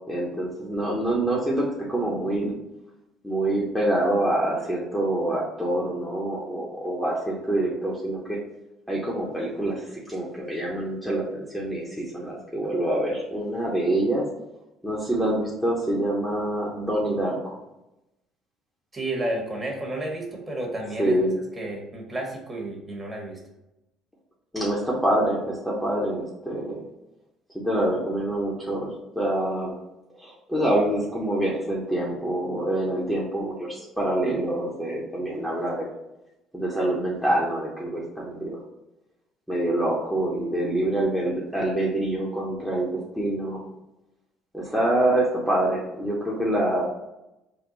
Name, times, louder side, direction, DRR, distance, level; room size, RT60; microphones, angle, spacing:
voice 1, 0.1-2.6 3.2-8.4 8.9-14.2 14.8-17.6 21.0-21.3 24.5-26.9 27.5-29.8 30.2-35.9 36.5-38.6 39.5-43.6 44.5-46.9, right 1 dB, ahead, -5 dB, 1.0 m, -26 dB
voice 2, 18.9-21.2 21.6-23.4, right 1 dB, 20° right, -1 dB, 1.5 m, -31 dB
4.3 x 2.3 x 4.0 m, 0.93 s
hypercardioid pair, 70°, 0 cm